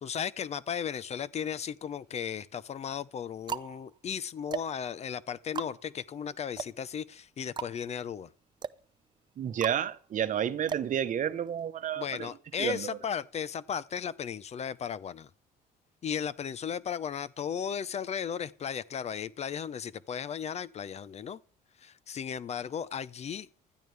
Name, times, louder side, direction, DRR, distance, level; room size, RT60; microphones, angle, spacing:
voice 1, 0.0-8.3 12.0-15.3 16.0-21.4 21.8-23.5, left 8 dB, 40° left, 0.6 m, -35 dB
sound 1, 1.5-2.2 2.9-11.7, right 6 dB, 25° right, 0.5 m, -41 dB
voice 2, 9.4-12.3 12.6-13.0, right 9 dB, 50° right, 1.0 m, -31 dB
16.0 x 12.0 x 3.4 m
cardioid pair, 110°, 17 cm